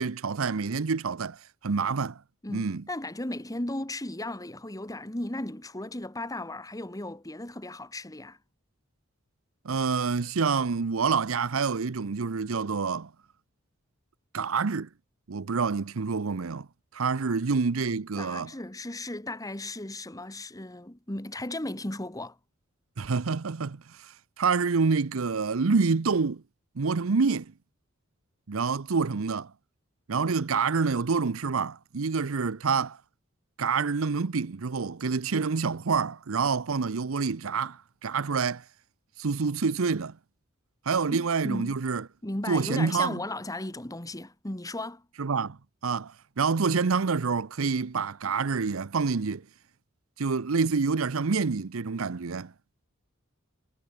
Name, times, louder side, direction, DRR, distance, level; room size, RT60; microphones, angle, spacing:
voice 1, 0.0-1.4 1.6-2.2 2.5-2.8 9.6-13.1 14.3-14.9 15.3-16.7 16.9-18.5 23.0-26.4 26.8-27.5 28.5-29.5 30.1-33.0 33.6-38.6 39.2-40.1 40.9-42.0 42.5-43.2 45.2-45.6 45.8-49.4 50.2-52.5, right 5 dB, 75° right, 0.7 m, -27 dB
voice 2, 2.4-8.4 18.2-22.4 41.1-41.8 42.2-45.0, left 1 dB, 15° left, 1.8 m, -36 dB
head